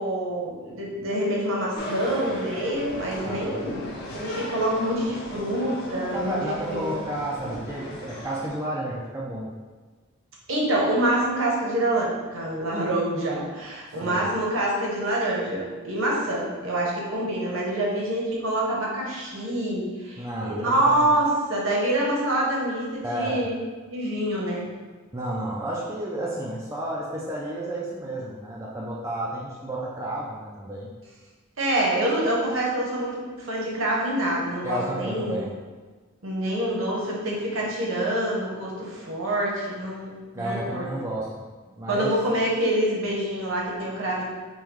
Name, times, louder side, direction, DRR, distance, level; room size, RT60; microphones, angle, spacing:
voice 1, 0.0-3.9 4.1-6.8 10.5-23.6 23.9-24.6 31.6-35.4 36.2-40.9 41.9-44.2, right 1 dB, 70° right, -4 dB, 0.9 m, -26 dB
sound 1, 1.7-8.5, equal, 50° left, 0.8 m, -37 dB
voice 2, 3.2-3.6 5.9-9.5 14.0-14.3 20.2-21.1 23.0-23.4 25.1-30.9 34.6-35.5 40.3-41.3 41.8-42.1, right 1 dB, 15° right, -5 dB, 0.4 m, -31 dB
5.5 x 2.2 x 3.1 m, 1.4 s
head